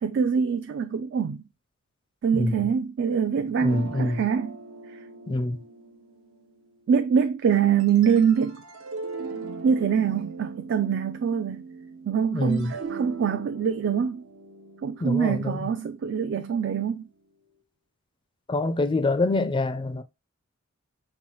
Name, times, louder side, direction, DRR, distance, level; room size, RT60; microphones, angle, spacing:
voice 1, 0.0-1.4 2.2-4.5 4.9-5.0 6.9-8.6 9.6-11.6 12.1-14.2 14.8-17.0, right 7 dB, 55° right, 0.3 m, -24 dB
voice 2, 3.6-4.2 5.3-5.6 12.3-12.7 15.0-15.7 18.5-20.0, left 2 dB, 25° left, 0.3 m, -25 dB
sound 1, 3.7-6.8 7.8-12.1 12.4-16.6, right 4 dB, 75° right, 0.8 m, -40 dB
5.5 x 2.3 x 3.0 m
head